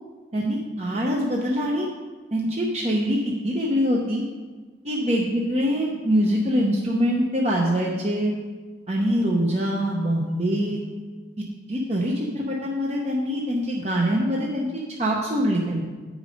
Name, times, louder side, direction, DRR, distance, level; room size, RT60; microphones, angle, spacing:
voice 1, 0.3-1.9 2.3-4.2 4.8-8.3 8.9-10.8 11.7-14.7 15.0-15.8, equal, 35° right, -2 dB, 0.7 m, -24 dB
8.8 x 5.1 x 5.2 m, 1.4 s
head